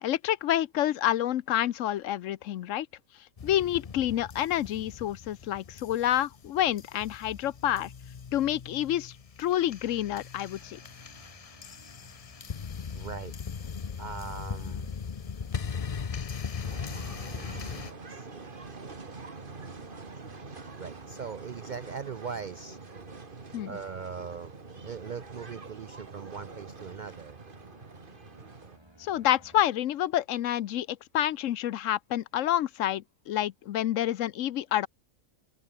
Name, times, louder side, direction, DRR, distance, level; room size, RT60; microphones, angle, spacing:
voice 1, 0.0-2.9 3.4-7.9 8.3-9.1 9.4-10.8 23.5-23.8 29.0-34.9, left 12 dB, 75° left, 1.0 m, -28 dB
sound 1, 3.4-17.9, left 6 dB, 35° left, 0.6 m, -39 dB
sound 2, 10.6-29.6, right 1 dB, 20° right, 3.1 m, -57 dB
voice 2, 12.9-13.7 14.0-14.9 18.1-18.9 20.8-22.8 23.7-24.6 24.8-27.4, right 6 dB, 55° right, 0.5 m, -40 dB
sound 3, 16.6-28.8, right 4 dB, 40° right, 2.0 m, -45 dB
open air
omnidirectional pair, 1.3 m